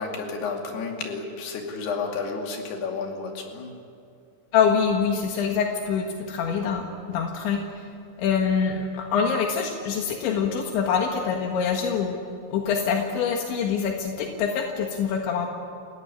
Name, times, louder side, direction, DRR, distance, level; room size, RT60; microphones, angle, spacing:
voice 1, 0.0-3.7, left 4 dB, 65° left, 2 dB, 4.5 m, -31 dB
voice 2, 4.5-7.6 8.2-12.2 12.5-15.5, left 6 dB, 80° left, 2 dB, 3.9 m, -25 dB
29.0 x 17.0 x 9.9 m, 2.5 s
omnidirectional pair, 5.2 m